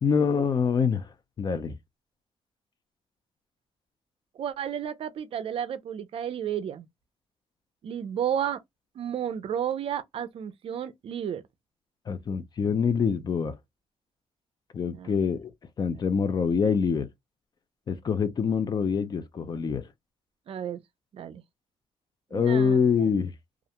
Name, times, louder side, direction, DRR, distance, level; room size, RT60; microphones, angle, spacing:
voice 1, 0.0-1.8 12.1-13.5 14.7-15.5 15.8-17.1 17.9-19.9 22.3-23.3, left 6 dB, 40° left, 0.5 m, -25 dB
voice 2, 4.3-6.9 7.8-8.6 9.0-11.4 14.9-15.2 20.5-20.8 21.1-21.4 22.3-22.8, right 9 dB, 60° right, 0.4 m, -32 dB
2.4 x 2.1 x 2.8 m
cardioid pair, 115°, 11 cm